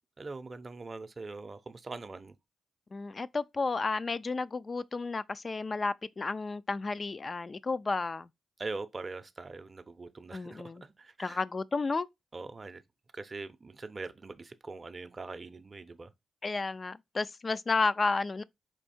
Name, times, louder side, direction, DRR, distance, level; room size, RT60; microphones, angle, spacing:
voice 1, 0.2-2.3 8.6-11.4 12.3-12.8 13.1-16.1, right 3 dB, 35° right, 0.6 m, -42 dB
voice 2, 2.9-8.3 10.3-10.8 11.2-12.1 16.4-18.4, left 3 dB, 40° left, 0.4 m, -32 dB
4.5 x 2.7 x 4.2 m
supercardioid pair, 55°, 0 cm